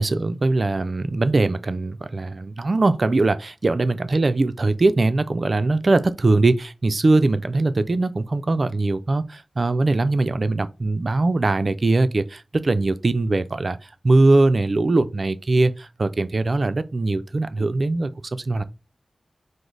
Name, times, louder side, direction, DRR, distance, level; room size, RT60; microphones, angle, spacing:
voice 1, 0.0-18.6, right 2 dB, 50° right, 0.4 m, -21 dB
4.9 x 2.0 x 3.9 m
wide cardioid pair, 85°, 0 cm